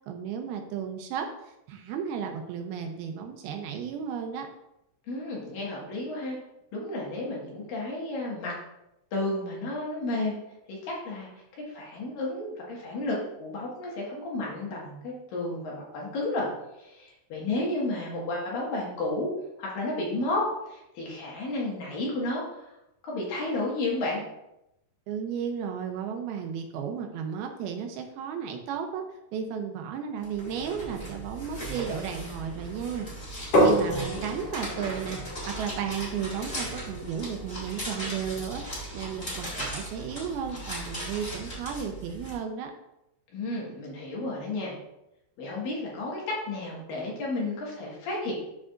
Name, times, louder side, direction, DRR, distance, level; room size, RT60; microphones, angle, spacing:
voice 1, 0.1-1.3 1.7-4.5 25.1-29.1 29.3-33.1 33.6-35.2 35.5-42.7, right 7 dB, 80° right, 4 dB, 2.4 m, -34 dB
voice 2, 5.1-6.4 6.7-8.5 9.1-10.4 10.7-11.3 11.7-16.5 16.8-19.3 19.6-20.4 20.7-22.7 23.0-24.2 43.3-44.7 45.4-48.3, left 2 dB, 65° left, -4 dB, 3.1 m, -32 dB
sound 1, 30.2-42.3, right 1 dB, 20° left, 2.4 m, -38 dB
sound 2, 33.5-39.2, equal, 50° left, 3.2 m, -30 dB
12.5 x 4.8 x 2.5 m, 0.87 s
omnidirectional pair, 4.6 m